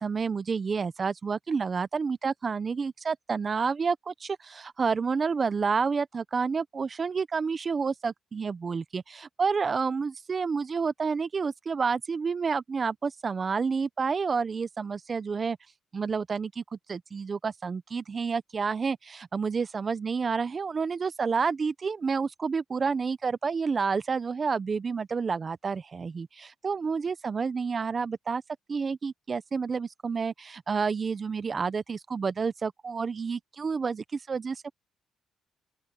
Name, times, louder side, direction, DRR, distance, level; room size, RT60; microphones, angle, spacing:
voice 1, 0.0-15.6 15.9-16.6 16.9-28.4 28.7-34.7, right 5 dB, 40° right, 0.8 m, -29 dB
open air
cardioid pair, 85°, 0 cm